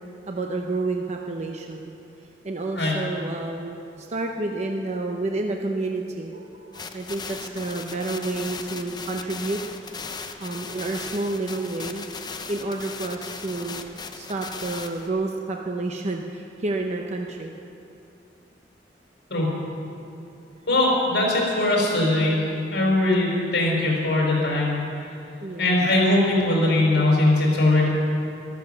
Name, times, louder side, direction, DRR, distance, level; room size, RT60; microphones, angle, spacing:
voice 1, 0.3-1.9 2.4-9.6 10.4-12.1 12.5-17.5 25.4-25.7, right 2 dB, 40° right, 2 dB, 0.7 m, -30 dB
sound 1, 6.7-15.1, left 4 dB, 25° left, 0.7 m, -37 dB
voice 2, 20.7-22.5 22.7-24.8 25.6-27.9, left 2 dB, 65° left, -2 dB, 4.7 m, -20 dB
14.0 x 12.5 x 6.8 m, 2.7 s
head